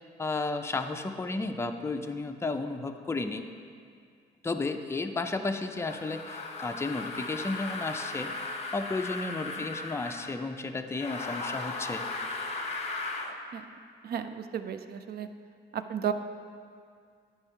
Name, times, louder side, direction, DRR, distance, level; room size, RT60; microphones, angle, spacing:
voice 1, 0.2-3.4 4.4-12.1, left 3 dB, 15° left, 6 dB, 0.4 m, -33 dB
sound 1, 5.7-10.4 10.9-13.4, left 3 dB, 35° left, 0.8 m, -37 dB
voice 2, 14.0-15.3 15.7-16.1, right 8 dB, 50° right, 9 dB, 0.5 m, -34 dB
9.7 x 4.6 x 4.4 m, 2.2 s
cardioid pair, 90°, 20 cm